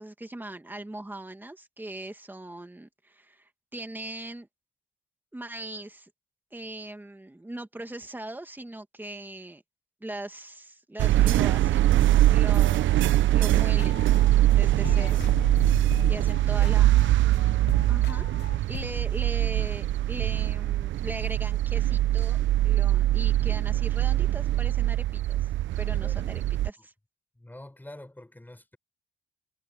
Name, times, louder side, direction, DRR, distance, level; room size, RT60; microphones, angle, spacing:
voice 1, 0.0-4.5 5.3-6.1 6.5-9.6 10.0-11.8 12.3-12.9 13.3-14.1 14.6-15.3 15.6-17.0 17.9-22.4 22.6-25.4 25.8-26.9, right 1 dB, 10° right, 2.4 m, -40 dB
sound 1, 11.0-26.7, right 14 dB, 75° right, 0.7 m, -23 dB
sound 2, 13.6-14.5 14.8-19.2, left 12 dB, 60° left, 0.7 m, -40 dB
voice 2, 15.8-16.8 25.9-26.5 27.4-28.8, left 1 dB, 10° left, 5.8 m, -47 dB
cardioid pair, 90°, 20 cm